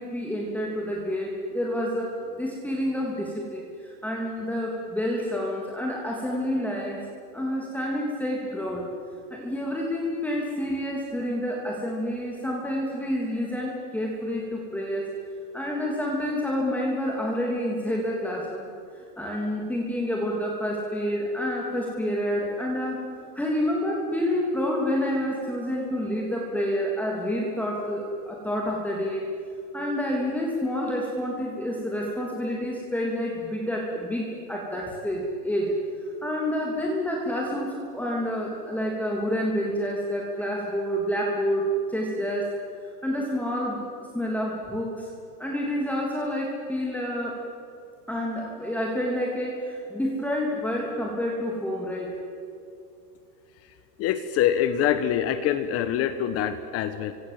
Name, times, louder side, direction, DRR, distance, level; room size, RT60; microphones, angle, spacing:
voice 1, 0.0-7.1 7.3-8.9 9.3-15.1 15.5-18.7 18.9-23.0 23.3-29.3 29.7-35.7 36.2-42.6 43.0-45.1 45.4-47.4 48.1-52.2, equal, 5° left, -2 dB, 3.2 m, -28 dB
voice 2, 54.0-57.1, left 10 dB, 30° left, 10 dB, 1.2 m, -25 dB
27.0 x 25.0 x 7.7 m, 2.6 s
supercardioid pair, 145°, 48 cm